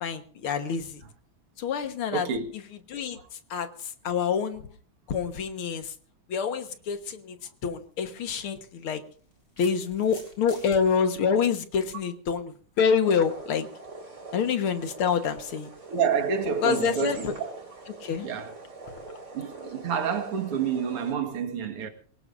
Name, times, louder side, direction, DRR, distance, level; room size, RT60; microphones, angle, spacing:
voice 1, 0.0-1.0 1.6-2.3 2.9-4.7 5.1-5.9 6.3-7.4 7.6-9.0 9.6-13.7 14.3-15.7 16.6-17.3 18.0-18.3, left 6 dB, 75° left, 2.2 m, -27 dB
voice 2, 2.1-2.5 3.2-3.3 15.9-17.5 18.2-18.6 19.3-21.9, right 6 dB, 90° right, 2.6 m, -28 dB
sound 1, 7.7-7.8 8.9-10.8, left 2 dB, 50° left, 4.7 m, -47 dB
sound 2, 13.0-21.1, right 3 dB, 30° right, 4.5 m, -42 dB
23.5 x 18.5 x 2.6 m
omnidirectional pair, 2.4 m